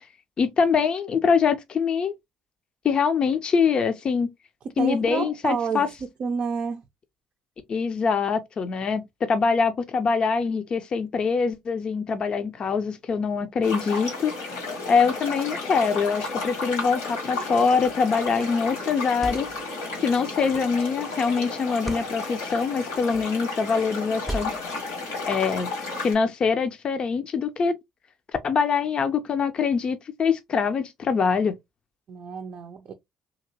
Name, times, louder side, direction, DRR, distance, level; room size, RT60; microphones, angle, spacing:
voice 1, 0.4-2.2 2.8-4.3 4.8-5.9 7.7-9.0 9.3-19.5 20.0-24.5 25.3-25.7 26.0-27.7 28.4-31.5, left 5 dB, 45° left, 0.5 m, -24 dB
voice 2, 4.8-5.9 6.2-6.8 32.1-32.9, right 5 dB, 55° right, 0.5 m, -29 dB
sound 1, 13.6-26.1, left 3 dB, 85° left, 1.4 m, -33 dB
sound 2, 17.8-18.1 19.0-19.7 20.5-20.9 21.7-22.1 23.0-23.4 24.2-24.8, right 1 dB, ahead, 0.6 m, -36 dB
2.9 x 2.8 x 2.7 m
hypercardioid pair, 55°, 2 cm